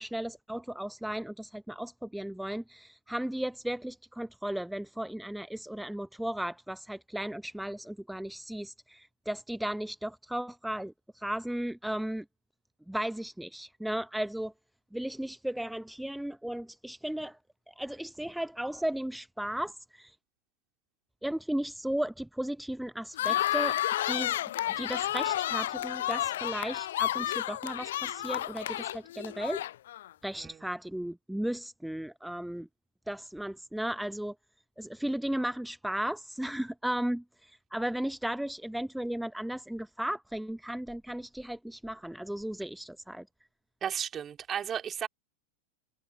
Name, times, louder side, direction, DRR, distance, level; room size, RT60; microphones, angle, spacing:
voice 1, 0.0-12.2 12.9-14.5 14.9-17.4 17.7-20.2 21.2-23.8 24.0-24.4 24.8-29.6 30.2-32.7 33.1-34.3 34.8-43.2, right 1 dB, ahead, 0.9 m, -35 dB
sound 1, 23.2-30.1, left 13 dB, 60° left, 0.5 m, -31 dB
voice 2, 43.8-45.1, right 8 dB, 25° right, 3.6 m, -34 dB
figure-of-eight pair, 90°, 0 cm